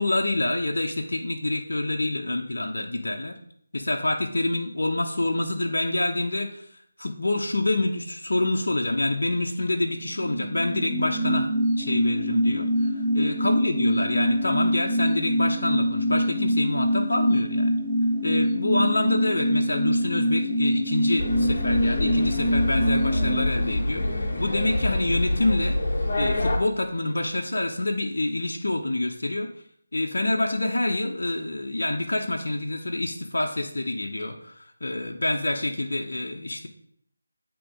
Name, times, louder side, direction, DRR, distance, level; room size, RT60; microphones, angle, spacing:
voice 1, 0.0-3.4 3.7-6.6 7.0-17.8 18.2-25.8 26.2-29.5 29.9-36.7, left 2 dB, 65° left, 1 dB, 0.9 m, -27 dB
sound 1, 10.0-25.2 25.5-25.6, equal, 10° left, 2.4 m, -25 dB
sound 2, 21.2-26.6, left 1 dB, 45° left, 1.3 m, -26 dB
8.5 x 3.1 x 4.8 m, 0.65 s
figure-of-eight pair, 160°, 0 cm